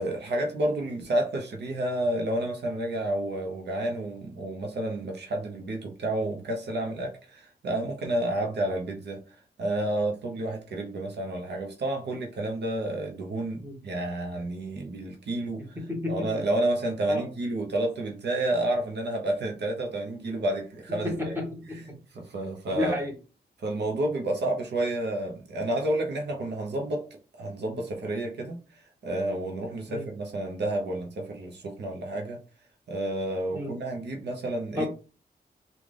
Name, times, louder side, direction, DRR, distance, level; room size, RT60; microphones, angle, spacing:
voice 1, 0.0-9.2 9.6-15.6 16.1-21.3 21.7-21.8 22.1-22.9 23.6-27.0 27.4-28.6 29.0-32.4 32.9-34.9, right 1 dB, 80° right, 0.8 m, -30 dB
voice 2, 15.8-16.3 17.1-17.3 21.0-21.8 22.7-23.1 29.9-30.1 33.5-33.7 34.8-34.9, left 1 dB, 15° right, 1.5 m, -31 dB
3.7 x 2.4 x 3.3 m
wide cardioid pair, 105°, 17 cm